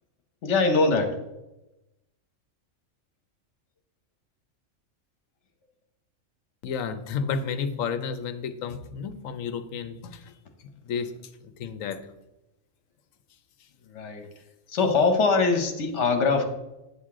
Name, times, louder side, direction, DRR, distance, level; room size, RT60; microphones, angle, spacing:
voice 1, 0.4-1.1 13.9-14.3 14.7-16.4, left 4 dB, 60° left, 5 dB, 1.3 m, -22 dB
voice 2, 6.6-10.3 10.6-11.1 11.4-12.0, left 6 dB, 80° left, 9 dB, 1.1 m, -32 dB
9.1 x 6.4 x 3.7 m, 0.96 s
omnidirectional pair, 1.4 m